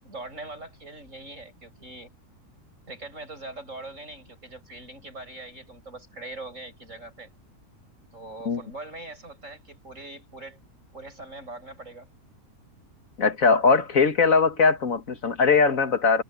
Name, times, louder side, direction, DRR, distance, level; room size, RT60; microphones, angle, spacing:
voice 1, 0.0-2.1 2.9-7.3 8.1-10.6 10.9-12.1, right 2 dB, 55° right, 8.2 m, -42 dB
voice 2, 13.2-16.2, left 5 dB, 60° left, 2.2 m, -20 dB
omnidirectional pair, 1.6 m